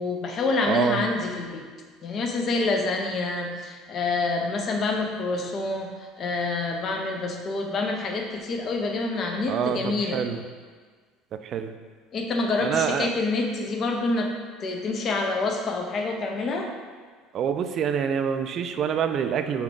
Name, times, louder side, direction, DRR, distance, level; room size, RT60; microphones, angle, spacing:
voice 1, 0.0-1.6 2.0-5.9 6.2-10.2 12.1-14.3 14.6-16.7, left 3 dB, 45° left, 3 dB, 0.5 m, -27 dB
voice 2, 0.6-1.0 9.5-10.4 11.4-11.7 12.6-13.1 17.3-19.6, right 8 dB, 50° right, 8 dB, 0.3 m, -26 dB
5.1 x 2.4 x 3.7 m, 1.5 s
supercardioid pair, 90°, 0 cm